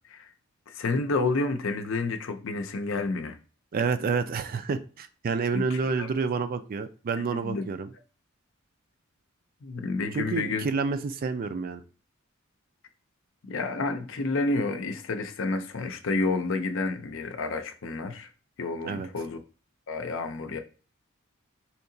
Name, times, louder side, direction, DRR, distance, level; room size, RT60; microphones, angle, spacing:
voice 1, 0.7-3.4 5.5-6.1 7.2-7.7 9.6-10.7 13.4-18.3 18.6-19.4 19.9-20.6, left 3 dB, 70° left, 0.6 m, -30 dB
voice 2, 3.7-7.9 10.1-11.8 18.8-19.1, right 5 dB, 45° right, 0.4 m, -29 dB
4.5 x 2.8 x 2.7 m
head